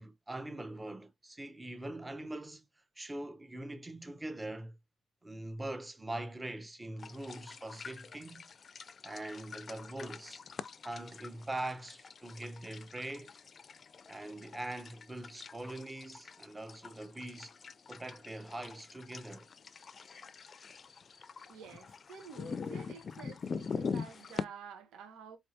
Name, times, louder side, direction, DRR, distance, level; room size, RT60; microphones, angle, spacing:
voice 1, 0.0-2.6 3.0-4.8 5.2-8.5 9.0-10.4 10.8-13.3 14.1-17.5 17.9-19.5, right 1 dB, 15° right, 0.7 m, -42 dB
sound 1, 7.0-24.4, left 5 dB, 45° left, 0.4 m, -44 dB
voice 2, 21.5-25.4, right 6 dB, 85° right, 1.0 m, -50 dB
4.4 x 2.8 x 2.8 m
cardioid pair, 90°, 0 cm